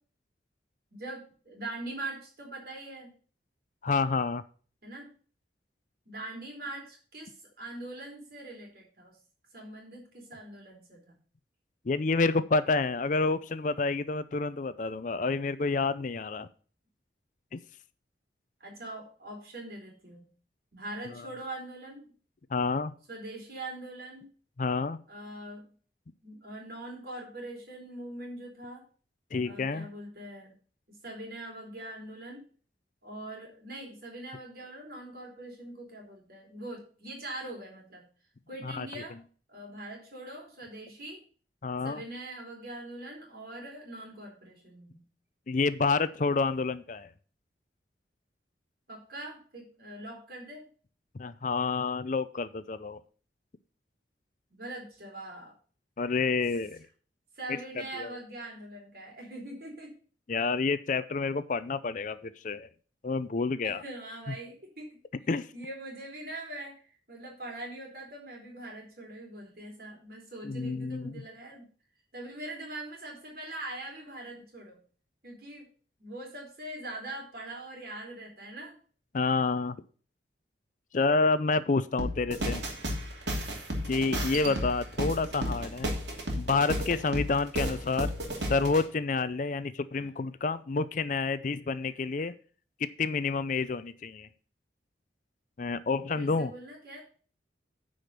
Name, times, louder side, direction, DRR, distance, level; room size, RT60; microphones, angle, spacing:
voice 1, 0.9-3.1 4.8-5.1 6.1-9.2 9.5-11.2 18.6-20.3 20.7-22.0 23.1-24.3 25.1-25.6 26.2-28.8 29.4-30.6 30.9-32.4 33.0-38.1 38.5-39.2 39.5-41.2 41.8-45.1 48.9-50.7 54.5-55.5 56.3-56.4 57.4-59.9 63.6-65.0 65.2-71.7 72.1-74.8 75.2-75.7 76.0-78.7 90.0-90.1 96.1-97.1, right 1 dB, 55° right, 0 dB, 4.0 m, -42 dB
voice 2, 3.8-4.4 11.9-16.5 17.5-17.6 22.5-22.9 24.6-25.0 29.3-29.9 38.7-38.9 41.6-42.0 45.5-47.1 51.2-53.0 56.0-56.8 58.0-58.2 60.3-62.7 63.0-63.8 65.3-65.5 70.4-71.2 79.1-79.8 80.9-82.6 83.9-85.9 86.4-88.1 88.5-92.3 93.0-94.3 95.6-96.5, left 4 dB, 45° left, 14 dB, 0.5 m, -29 dB
sound 1, 82.0-88.8, equal, 75° right, 2.8 m, -33 dB
9.9 x 5.1 x 6.6 m, 0.42 s
head